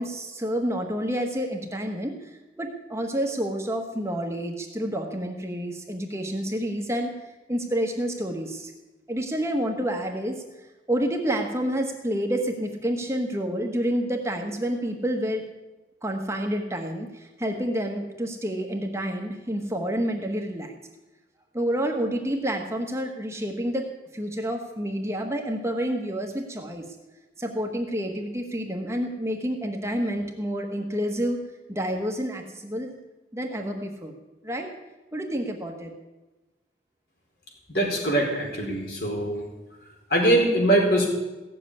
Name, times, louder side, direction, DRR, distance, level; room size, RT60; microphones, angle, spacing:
voice 1, 0.0-7.1 7.5-8.7 9.1-10.4 10.9-15.4 16.0-20.7 21.5-23.8 24.1-26.9 27.4-31.4 31.7-32.9 33.3-34.1 34.4-34.7 35.1-35.9, equal, 15° right, 3 dB, 1.2 m, -29 dB
voice 2, 37.7-39.4 40.1-41.1, right 1 dB, 60° left, 0 dB, 4.6 m, -22 dB
16.0 x 7.6 x 9.7 m, 1.1 s
head